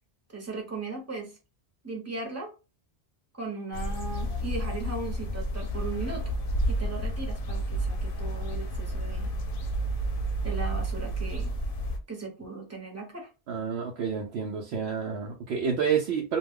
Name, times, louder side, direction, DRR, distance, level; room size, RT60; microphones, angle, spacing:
voice 1, 0.3-1.3 1.8-2.5 3.3-6.2 6.7-9.3 10.4-11.5 12.1-13.3, right 3 dB, 15° right, 1 dB, 0.7 m, -37 dB
sound 1, 3.7-12.0, right 1 dB, 65° left, 0.7 m, -30 dB
voice 2, 13.5-16.4, right 6 dB, 90° right, 0 dB, 0.8 m, -29 dB
2.2 x 2.2 x 3.5 m, 0.31 s
omnidirectional pair, 1.0 m